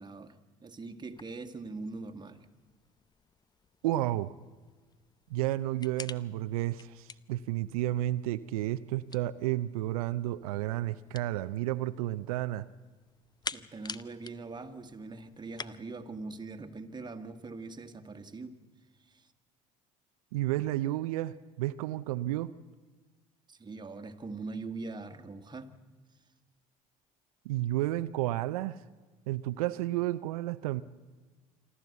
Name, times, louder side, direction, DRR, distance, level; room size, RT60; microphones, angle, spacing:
voice 1, 0.0-2.5 13.5-18.6 19.1-19.3 23.5-25.7, right 3 dB, 25° right, 8 dB, 1.8 m, -42 dB
sound 1, 1.1-15.7, left 5 dB, 20° left, 0.7 m, -49 dB
voice 2, 3.8-4.3 5.3-12.6 20.3-22.5 27.5-28.8 29.3-30.8, right 15 dB, 80° right, 12 dB, 0.5 m, -31 dB
26.5 x 12.5 x 8.2 m, 1.3 s
hypercardioid pair, 70°, 18 cm